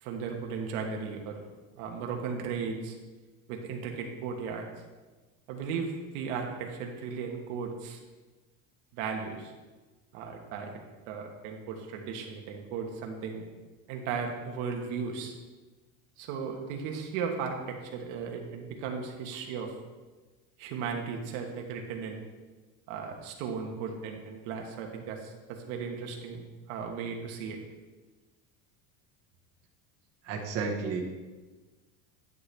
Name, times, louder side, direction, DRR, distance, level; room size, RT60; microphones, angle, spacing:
voice 1, 0.0-1.4 1.8-2.9 3.5-4.6 5.5-8.0 8.9-9.5 10.1-10.7 11.1-13.4 13.9-15.3 16.2-19.7 20.6-22.2 22.9-26.4 26.7-27.6, right 5 dB, 80° right, 2 dB, 1.4 m, -36 dB
voice 2, 30.2-31.0, right 4 dB, 40° right, -1 dB, 1.2 m, -32 dB
11.0 x 6.9 x 3.4 m, 1.3 s
cardioid pair, 170°, 39 cm